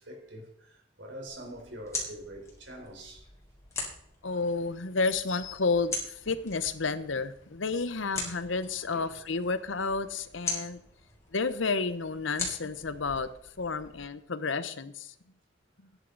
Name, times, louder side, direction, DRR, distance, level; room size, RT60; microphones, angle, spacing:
voice 1, 0.0-3.3 8.9-9.1, right 1 dB, 70° right, 4.1 m, -44 dB
sound 1, 1.3-14.0, left 3 dB, 15° left, 4.0 m, -41 dB
voice 2, 4.2-10.8 11.3-13.3 13.6-15.1, left 4 dB, 80° left, 0.9 m, -31 dB
14.5 x 10.5 x 4.0 m
head